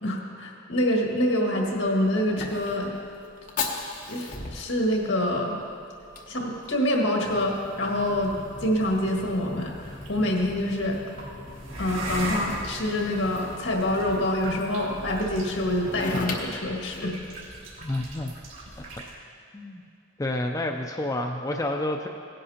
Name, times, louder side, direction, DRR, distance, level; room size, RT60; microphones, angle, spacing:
voice 1, 0.0-2.9 4.1-5.6 6.3-8.4 8.6-9.8 10.1-11.0 11.8-17.2, left 1 dB, 75° left, 0 dB, 1.7 m, -26 dB
Fire, 1.5-17.7, left 3 dB, 45° left, 1.0 m, -39 dB
sound 1, 8.0-19.1, right 1 dB, 85° right, 2.6 m, -40 dB
voice 2, 17.8-18.3 19.5-19.8 20.2-22.1, left 1 dB, 15° left, 2 dB, 0.4 m, -29 dB
17.0 x 10.5 x 2.9 m, 2.5 s
head